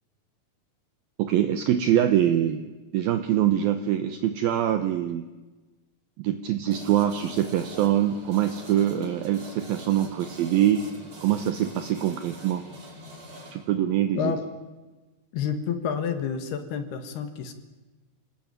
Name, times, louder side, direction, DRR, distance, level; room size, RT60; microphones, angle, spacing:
voice 1, 1.2-5.3 6.2-10.8 11.2-12.6 13.5-14.3, right 11 dB, 80° right, 9 dB, 2.1 m, -24 dB
sound 1, 6.7-13.5, equal, 35° right, 7.2 m, -44 dB
voice 2, 15.3-17.5, left 7 dB, 65° left, 9 dB, 3.3 m, -29 dB
26.5 x 18.0 x 9.1 m, 1.2 s
omnidirectional pair, 5.6 m